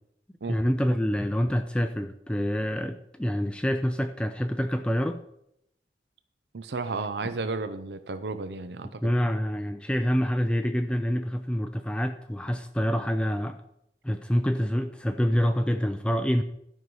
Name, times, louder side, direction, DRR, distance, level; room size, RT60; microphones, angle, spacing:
voice 1, 0.5-5.2 9.0-13.6 14.0-16.4, equal, 5° left, 7 dB, 0.4 m, -26 dB
voice 2, 6.5-9.1, right 3 dB, 70° right, 10 dB, 0.6 m, -33 dB
12.5 x 5.4 x 6.2 m, 0.78 s
head